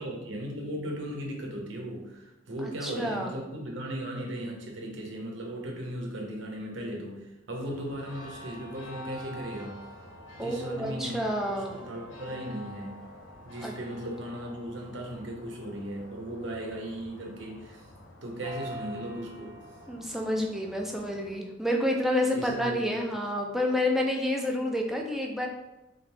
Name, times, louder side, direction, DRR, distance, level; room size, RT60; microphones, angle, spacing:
voice 1, 0.0-9.8 10.4-11.3 11.7-13.0 13.4-17.9 18.2-19.6 22.3-23.1, right 1 dB, 70° right, -1 dB, 0.8 m, -37 dB
voice 2, 2.8-3.3 10.4-11.8 13.6-13.7 19.9-25.5, left 1 dB, ahead, 0 dB, 0.5 m, -29 dB
sound 1, 7.6-21.4, equal, 75° left, 0.8 m, -46 dB
3.8 x 2.7 x 3.3 m, 1.0 s
head